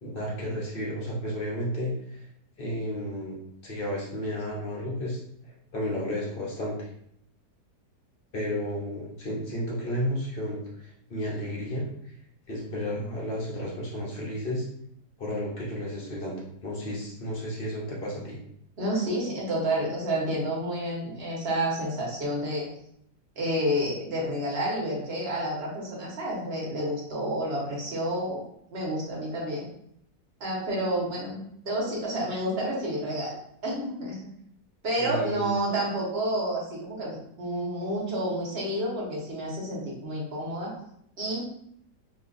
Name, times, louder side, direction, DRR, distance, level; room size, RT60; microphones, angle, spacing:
voice 1, 0.0-2.3 2.6-5.2 5.4-6.9 8.3-11.9 12.5-14.7 15.2-16.4 16.6-18.4 35.0-35.5, equal, 45° left, -3 dB, 0.8 m, -32 dB
voice 2, 18.8-22.7 23.4-28.4 28.7-29.7 30.4-33.3 33.6-34.2 34.8-40.7 41.2-41.5, right 1 dB, 40° right, -4 dB, 1.2 m, -29 dB
3.0 x 2.4 x 3.8 m, 0.70 s
omnidirectional pair, 1.8 m